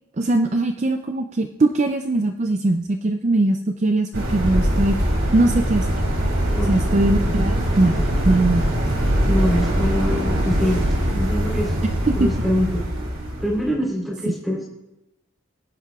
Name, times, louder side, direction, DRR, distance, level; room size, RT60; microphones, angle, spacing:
voice 1, 0.2-5.0 5.3-6.0 6.7-8.0 8.2-8.8 12.1-12.3, right 2 dB, 35° right, 6 dB, 0.4 m, -20 dB
sound 1, 4.1-13.7, equal, 65° right, 3.2 m, -22 dB
voice 2, 9.2-10.8 11.1-11.8 12.2-12.8 13.4-14.7, equal, ahead, -2 dB, 3.6 m, -24 dB
23.5 x 10.5 x 2.4 m, 0.93 s
head